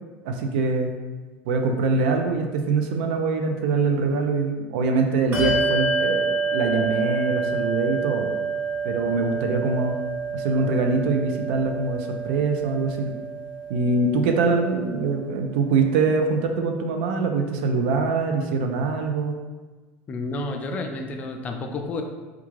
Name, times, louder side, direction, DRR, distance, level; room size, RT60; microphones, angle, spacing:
voice 1, 0.3-0.9 1.4-8.3 8.8-10.0 10.3-13.2 13.7-19.4, right 4 dB, 80° right, 4 dB, 0.4 m, -23 dB
Bell, 5.3-15.3, right 4 dB, 35° right, 0.9 m, -28 dB
voice 2, 20.1-22.0, left 2 dB, 30° left, 4 dB, 0.3 m, -30 dB
3.5 x 2.4 x 3.0 m, 1.3 s
supercardioid pair, 140°, 5 cm